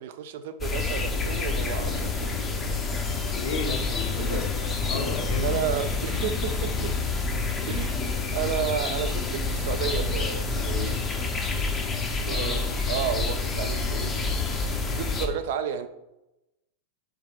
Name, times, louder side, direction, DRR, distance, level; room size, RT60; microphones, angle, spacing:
voice 1, 0.0-3.0 4.3-4.4 5.4-6.9 7.7-11.0 12.3-14.3 14.9-15.9, right 8 dB, 55° right, 10 dB, 0.3 m, -32 dB
sound 1, 0.6-15.3, left 4 dB, 20° left, 0.5 m, -28 dB
voice 2, 3.3-4.6 4.9-5.6 12.2-12.8, left 4 dB, 55° left, 2 dB, 0.7 m, -34 dB
4.6 x 3.4 x 2.4 m, 0.93 s
figure-of-eight pair, 90°, 0 cm